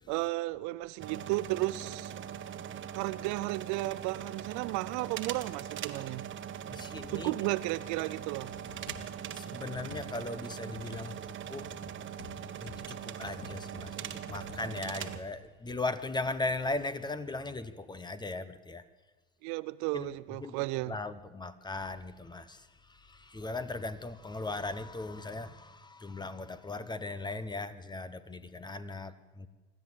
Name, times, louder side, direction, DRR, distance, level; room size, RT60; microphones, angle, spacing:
voice 1, 0.1-2.1 2.9-6.3 7.1-8.5 19.4-21.0, right 19 dB, 50° right, 0.7 m, -34 dB
sound 1, 1.0-15.2, right 9 dB, 30° right, 1.5 m, -41 dB
voice 2, 6.7-7.3 9.3-11.7 12.6-18.8 19.9-20.1 20.4-20.6 20.9-29.5, left 2 dB, 10° left, 1.1 m, -38 dB
sound 2, 8.5-9.2 9.7-10.4 10.7-11.2 11.6-12.9 13.2-14.0 14.3-14.7 15.0-15.8, left 4 dB, 70° left, 2.9 m, -50 dB
25.0 x 13.5 x 8.2 m
hypercardioid pair, 105°, 37 cm